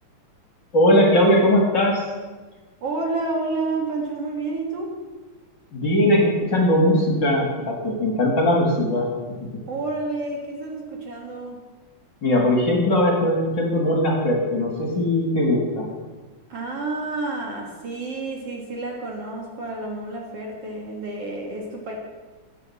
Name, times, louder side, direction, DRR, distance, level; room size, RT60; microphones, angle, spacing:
voice 1, 0.7-2.0 5.7-9.1 12.2-15.9, left 1 dB, 40° left, -1 dB, 2.0 m, -19 dB
voice 2, 2.8-5.0 9.7-11.6 16.5-21.9, right 3 dB, 55° right, 0 dB, 2.4 m, -29 dB
13.5 x 8.8 x 5.6 m, 1.3 s
omnidirectional pair, 3.7 m